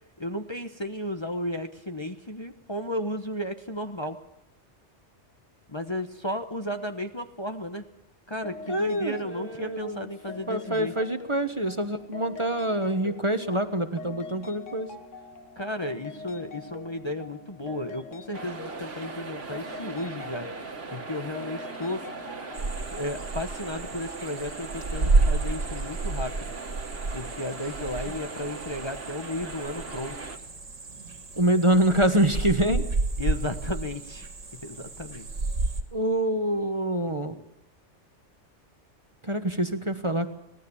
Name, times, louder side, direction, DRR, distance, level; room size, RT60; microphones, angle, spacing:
voice 1, 0.2-4.2 5.7-7.9 8.3-10.9 15.6-20.5 20.9-22.0 22.9-26.5 27.1-30.2 33.2-34.3 34.6-35.3, left 1 dB, 25° left, 6 dB, 1.1 m, -34 dB
sound 1, 8.4-23.2, left 4 dB, 85° left, 1.9 m, -44 dB
voice 2, 8.7-10.0 10.5-14.9 31.4-32.8 35.9-37.4 39.2-40.3, right 1 dB, 25° right, 8 dB, 1.2 m, -25 dB
sound 2, 18.3-30.4, right 4 dB, 55° right, 1.9 m, -39 dB
sound 3, 22.5-35.8, right 3 dB, 85° right, 2.3 m, -30 dB
24.5 x 18.0 x 7.1 m, 0.88 s
omnidirectional pair, 1.2 m